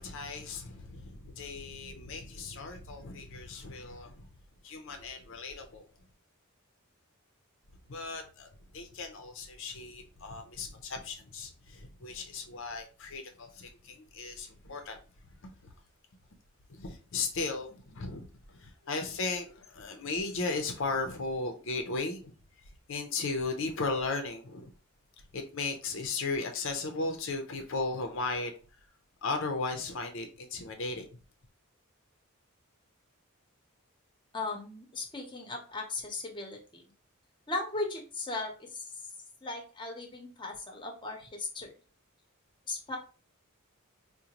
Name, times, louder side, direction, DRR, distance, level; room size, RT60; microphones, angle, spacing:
voice 1, 0.0-4.3 4.6-5.8 7.9-8.5 8.7-15.0 15.4-15.5 16.7-22.3 22.9-24.7 25.3-28.5 29.2-31.0, left 3 dB, 60° left, 0.6 m, -36 dB
voice 2, 34.3-36.8 37.5-38.8 39.4-41.7 42.7-43.0, left 3 dB, 20° left, 0.8 m, -37 dB
4.9 x 2.2 x 2.9 m
head